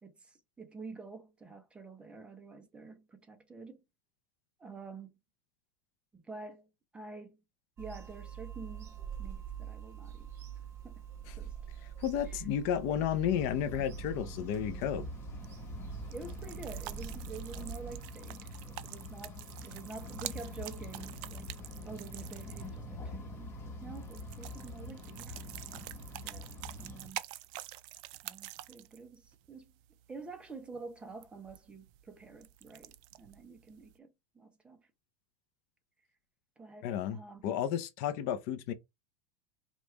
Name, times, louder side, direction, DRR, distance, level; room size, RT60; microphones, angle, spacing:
voice 1, 0.0-3.8 4.6-5.2 6.1-7.4 7.8-10.3 10.8-10.9 11.4-11.6 12.3-12.4 16.1-21.5 21.8-25.4 26.2-27.2 28.2-29.7 30.1-34.9 36.6-37.5, right 4 dB, 10° right, 0.7 m, -48 dB
Bird vocalization bird call bird song / Telephone, 7.8-18.0, right 9 dB, 25° right, 1.1 m, -45 dB
voice 2, 12.0-15.1 36.8-38.7, left 9 dB, 55° left, 0.6 m, -32 dB
sound 1, 13.3-27.1, left 1 dB, 25° left, 1.1 m, -45 dB
sound 2, 15.4-33.9, right 16 dB, 50° right, 0.4 m, -48 dB
5.3 x 2.4 x 3.0 m
supercardioid pair, 140°, 10 cm